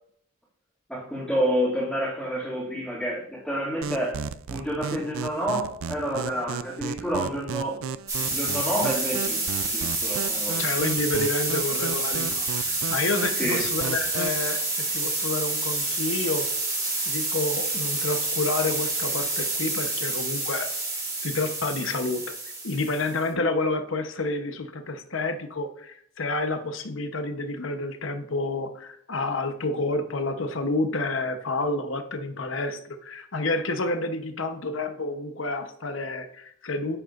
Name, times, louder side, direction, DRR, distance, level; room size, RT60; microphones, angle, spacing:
voice 1, 0.9-4.2 4.5-7.8 8.2-10.6 13.4-13.7, equal, 5° left, -11 dB, 2.5 m, -29 dB
sound 1, 3.8-14.4, right 6 dB, 80° right, 0.4 m, -35 dB
sound 2, 8.1-23.2, right 2 dB, 15° right, 2.5 m, -28 dB
voice 2, 10.6-16.5 17.1-20.7 21.2-22.2 22.6-37.0, left 2 dB, 65° left, 7 dB, 1.0 m, -29 dB
9.6 x 8.0 x 2.6 m, 0.65 s
head